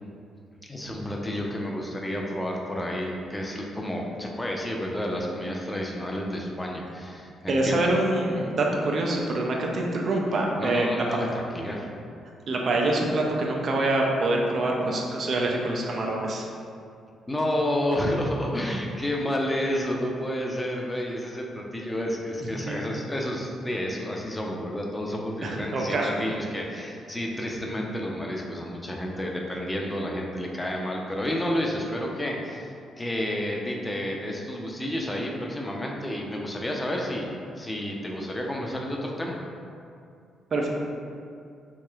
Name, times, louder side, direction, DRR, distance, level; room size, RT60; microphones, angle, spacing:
voice 1, 0.7-7.9 10.6-11.8 17.3-37.3 37.6-39.4, left 1 dB, 15° left, -1 dB, 0.5 m, -30 dB
voice 2, 7.5-11.0 12.5-16.5 22.6-22.8 25.4-26.1 40.5-40.7, right 2 dB, 50° right, 0 dB, 0.5 m, -25 dB
3.0 x 2.9 x 2.3 m, 2.4 s
hypercardioid pair, 40°, 0 cm